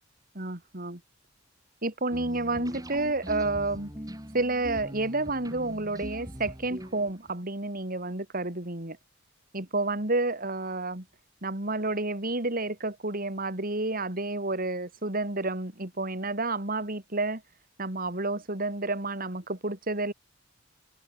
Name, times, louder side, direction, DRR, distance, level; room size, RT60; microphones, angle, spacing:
voice 1, 0.4-1.0 1.8-3.9 4.3-9.0 9.5-11.1 11.4-17.4 17.8-20.1, right 2 dB, 45° right, 3.6 m, -30 dB
sound 1, 2.1-7.3, equal, 20° right, 7.2 m, -41 dB
head